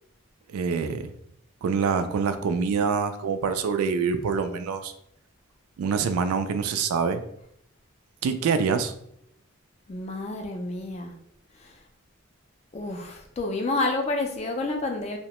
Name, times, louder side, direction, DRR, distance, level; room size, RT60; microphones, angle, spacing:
voice 1, 0.5-1.1 1.6-4.9 5.8-7.2 8.2-8.9, right 5 dB, 90° right, 10 dB, 0.3 m, -25 dB
voice 2, 9.9-11.1 11.6-11.7 12.7-15.2, left 2 dB, 30° left, 3 dB, 0.3 m, -29 dB
2.7 x 2.1 x 2.9 m, 0.72 s
head